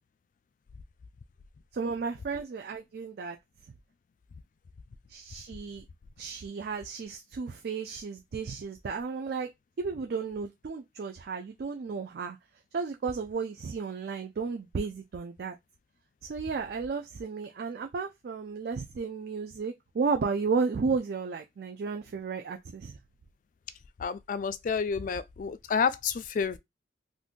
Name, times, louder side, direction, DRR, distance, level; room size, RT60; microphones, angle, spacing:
voice 1, 1.7-3.4 5.1-5.8 6.2-9.5 9.8-12.4 12.7-15.6 16.2-23.0, right 5 dB, 55° right, 0.4 m, -33 dB
voice 2, 24.0-26.6, left 6 dB, 45° left, 0.3 m, -29 dB
2.5 x 2.5 x 3.6 m
head